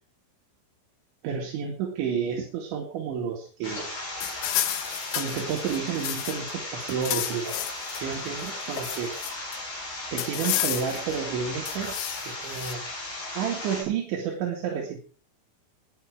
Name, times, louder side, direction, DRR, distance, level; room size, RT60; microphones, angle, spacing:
voice 1, 1.2-3.9 5.1-7.5 7.9-9.1 10.1-11.9 12.3-12.8 13.3-15.0, right 7 dB, 75° right, 0 dB, 4.4 m, -30 dB
sound 1, 3.6-13.8, left 2 dB, 55° left, 9.1 m, -36 dB
sound 2, 4.2-6.5 6.8-8.0 8.4-9.6 10.2-11.1 11.7-12.7, left 14 dB, 80° left, 3.4 m, -31 dB
19.5 x 11.0 x 4.8 m, 0.40 s
omnidirectional pair, 5.5 m